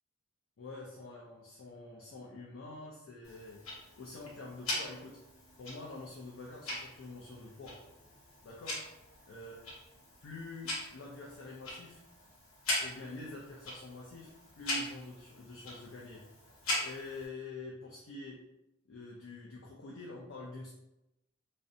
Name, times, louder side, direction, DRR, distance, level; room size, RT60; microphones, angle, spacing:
voice 1, 0.6-3.6 4.0-5.2 5.6-7.8 8.4-8.8 9.3-9.6 10.2-12.0 12.8-16.2 16.8-18.4 18.9-20.7, left 2 dB, 60° left, -3 dB, 0.4 m, -46 dB
Tick-tock, 3.2-17.3, left 1 dB, 85° left, 0.8 m, -41 dB
2.5 x 2.1 x 2.6 m, 0.94 s
head